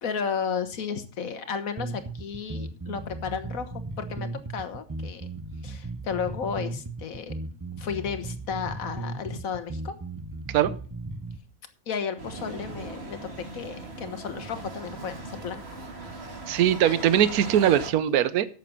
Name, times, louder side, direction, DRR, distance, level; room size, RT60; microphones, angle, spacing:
voice 1, 0.0-5.3 5.6-7.3 7.8-9.9 11.9-15.6 16.9-17.0, left 6 dB, 65° left, 1.6 m, -33 dB
sound 1, 1.8-11.4, right 2 dB, 20° right, 0.6 m, -36 dB
sound 2, 12.2-17.9, right 2 dB, 45° right, 2.2 m, -39 dB
voice 2, 16.5-18.5, right 10 dB, 80° right, 1.2 m, -21 dB
12.0 x 7.5 x 5.8 m
omnidirectional pair, 1.6 m